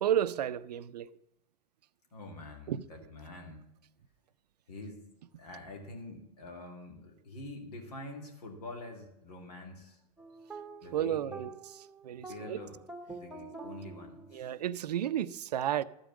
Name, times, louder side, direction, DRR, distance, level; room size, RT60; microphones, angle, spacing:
voice 1, 0.0-1.1 2.7-2.8 10.9-11.5 12.0-12.6 14.3-15.8, right 10 dB, 85° right, 0.5 m, -32 dB
voice 2, 2.1-3.7 4.7-5.0 5.3-10.0 10.8-11.5 12.1-12.8 13.1-14.5, left 2 dB, 80° left, 2.7 m, -46 dB
sound 1, 10.2-14.8, right 3 dB, 5° right, 1.1 m, -47 dB
12.5 x 5.2 x 8.2 m
hypercardioid pair, 105°, 20 cm